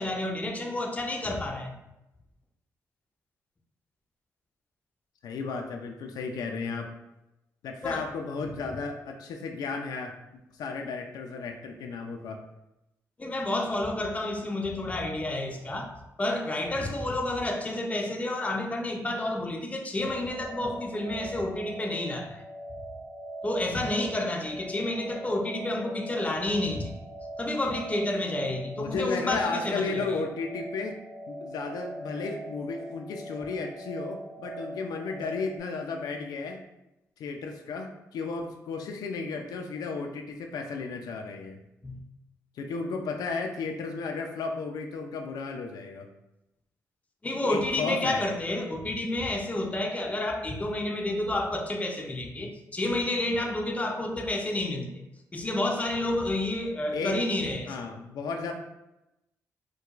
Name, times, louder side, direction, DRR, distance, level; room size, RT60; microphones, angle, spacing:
voice 1, 0.0-1.8 7.8-8.1 8.4-8.5 13.2-22.4 23.4-26.9 27.4-30.1 41.8-42.0 47.2-54.9 55.3-57.8, left 1 dB, 20° left, 2 dB, 0.5 m, -30 dB
voice 2, 5.2-6.9 7.6-10.1 10.6-12.4 28.7-31.0 31.3-36.6 37.2-41.6 42.6-46.1 47.4-48.2 56.9-57.2 57.7-58.5, left 4 dB, 80° left, 3 dB, 0.4 m, -34 dB
sound 1, 20.0-35.6, right 1 dB, 50° right, 1.0 m, -41 dB
4.5 x 2.2 x 2.4 m, 0.90 s
cardioid pair, 75°, 7 cm